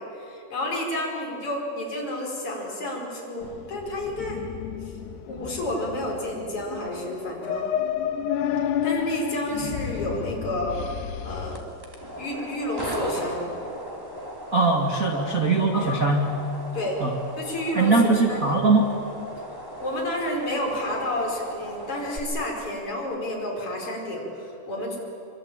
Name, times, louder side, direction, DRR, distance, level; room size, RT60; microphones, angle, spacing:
voice 1, 0.0-4.4 5.2-7.7 8.8-10.8 11.2-11.6 12.2-13.5 15.7-16.0 16.7-17.0 17.4-18.5 19.8-25.0, left 1 dB, 35° left, -2 dB, 5.7 m, -30 dB
sound 1, 3.4-11.6, left 8 dB, 80° left, 3.1 m, -31 dB
sound 2, 11.5-22.2, equal, 5° right, 2.5 m, -37 dB
voice 2, 14.5-16.3 17.0-17.1 17.7-18.9, right 3 dB, 60° right, -1 dB, 0.8 m, -21 dB
25.0 x 24.0 x 8.9 m, 2.9 s
omnidirectional pair, 4.9 m